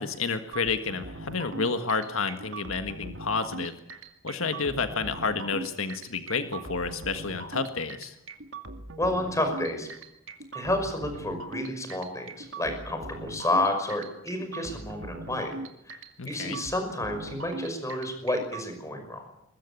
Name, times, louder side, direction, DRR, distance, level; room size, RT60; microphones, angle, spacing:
voice 1, 0.0-3.7 4.2-8.1 16.2-16.6, left 4 dB, 80° left, 8 dB, 1.6 m, -30 dB
sound 1, 0.5-18.6, right 2 dB, 70° right, 2.3 m, -41 dB
voice 2, 9.0-9.9 10.5-15.5 15.9-16.0 16.2-19.2, left 1 dB, 15° left, 6 dB, 5.5 m, -30 dB
22.5 x 21.0 x 8.5 m, 0.81 s
head